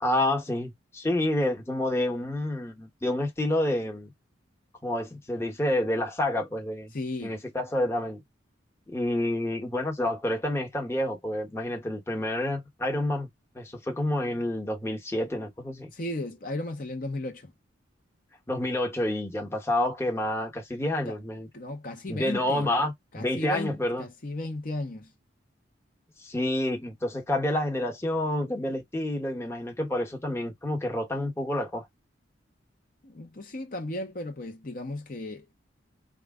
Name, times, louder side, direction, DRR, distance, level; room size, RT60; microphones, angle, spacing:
voice 1, 0.0-4.1 4.8-6.9 7.2-8.2 8.9-13.3 13.5-15.9 18.5-21.5 22.1-24.1 26.2-31.8, left 1 dB, 15° left, 1.1 m, -29 dB
voice 2, 6.9-7.4 15.9-17.5 21.1-21.2 21.5-22.7 23.1-25.1 33.0-35.6, left 1 dB, 45° left, 0.9 m, -35 dB
4.8 x 2.4 x 3.6 m
head